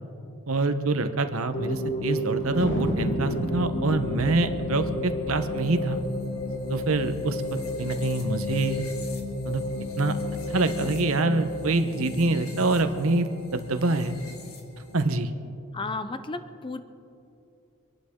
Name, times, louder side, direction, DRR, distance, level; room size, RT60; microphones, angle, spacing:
voice 1, 0.5-6.0 6.7-8.8 9.4-9.6 10.0-10.2 10.5-14.2 14.9-15.3, right 2 dB, 70° right, 9 dB, 1.0 m, -26 dB
sound 1, 1.5-15.1, left 1 dB, 80° left, 2.1 m, -33 dB
Thunder, 2.6-7.4 7.7-7.8 8.0-8.5 9.0-10.2, left 1 dB, 55° left, 1.5 m, -34 dB
voice 2, 15.7-16.8, left 3 dB, 25° left, 10 dB, 0.6 m, -33 dB
26.0 x 11.5 x 3.8 m, 2.7 s
head